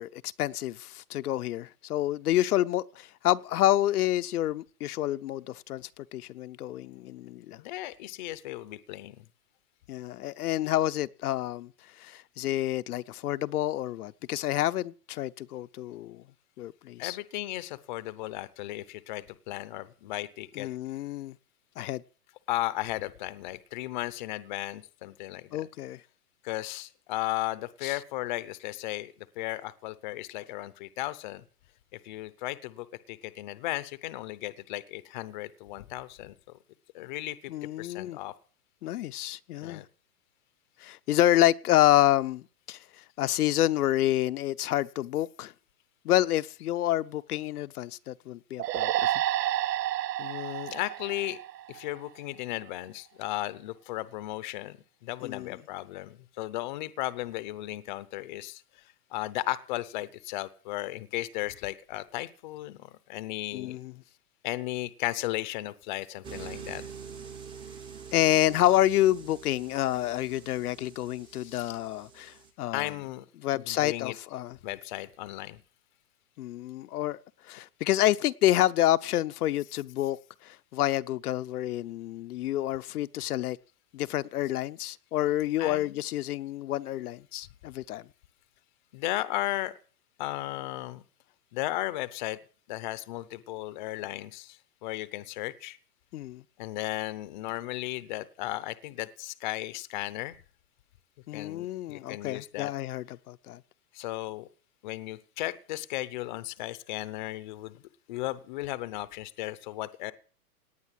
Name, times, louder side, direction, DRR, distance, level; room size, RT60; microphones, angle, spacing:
voice 1, 0.0-7.6 9.9-11.7 12.0-16.2 16.6-17.2 20.6-21.3 21.8-22.0 25.5-26.0 27.8-28.0 37.5-38.2 38.8-39.8 40.8-42.4 42.7-42.8 43.2-45.5 46.0-49.1 55.2-55.5 63.5-63.9 68.1-72.9 73.4-74.6 76.4-77.2 77.5-80.2 80.4-83.6 83.9-88.0 96.1-96.4 101.3-103.6, left 14 dB, 70° left, 0.8 m, -28 dB
voice 2, 7.6-9.2 17.0-20.7 22.5-25.6 26.4-31.4 31.9-36.3 36.9-37.5 37.8-38.3 39.6-39.9 50.2-51.4 51.7-54.8 55.0-58.6 59.1-63.8 64.4-66.8 71.3-71.8 72.7-73.2 73.5-74.2 74.6-75.6 77.5-77.6 79.7-79.8 85.6-86.0 88.9-89.7 90.2-91.0 91.5-92.4 92.7-95.8 96.6-100.4 101.3-102.7 103.9-104.5 104.8-107.8 108.1-110.1, left 17 dB, 30° left, 0.7 m, -35 dB
sound 1, 48.6-52.1, right 13 dB, 85° right, 0.7 m, -30 dB
sound 2, 66.2-72.5, right 6 dB, 10° right, 0.8 m, -45 dB
18.0 x 9.7 x 7.5 m
supercardioid pair, 170°, 48 cm